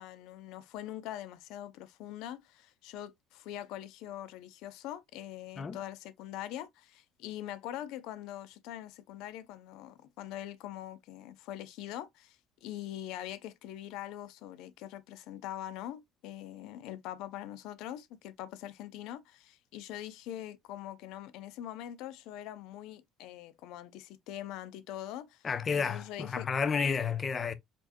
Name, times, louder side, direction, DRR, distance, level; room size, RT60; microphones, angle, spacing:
voice 1, 0.0-26.5, left 12 dB, 75° left, 0.5 m, -43 dB
voice 2, 25.4-27.5, left 6 dB, 35° left, 0.6 m, -31 dB
4.3 x 2.9 x 2.5 m
supercardioid pair, 105°, 0 cm